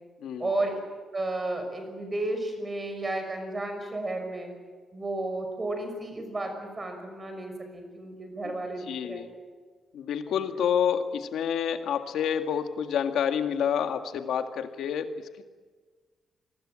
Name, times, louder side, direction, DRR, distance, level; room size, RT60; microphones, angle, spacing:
voice 1, 0.4-0.8 1.1-4.5 4.9-9.3 10.3-10.4, right 2 dB, 20° right, 6 dB, 5.9 m, -33 dB
voice 2, 8.8-9.3 9.9-15.4, left 8 dB, 85° left, 7 dB, 1.9 m, -28 dB
27.0 x 21.0 x 8.9 m, 1.4 s
wide cardioid pair, 155°, 0 cm